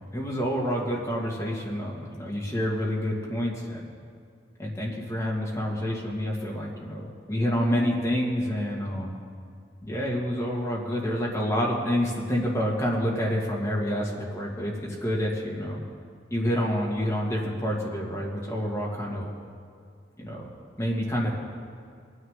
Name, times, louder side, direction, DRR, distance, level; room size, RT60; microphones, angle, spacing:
voice 1, 0.0-3.9 4.6-9.1 9.8-15.8 16.3-19.3 20.2-20.5 20.8-21.4, equal, 15° left, -4 dB, 2.1 m, -28 dB
21.5 x 9.8 x 3.7 m, 2.3 s
head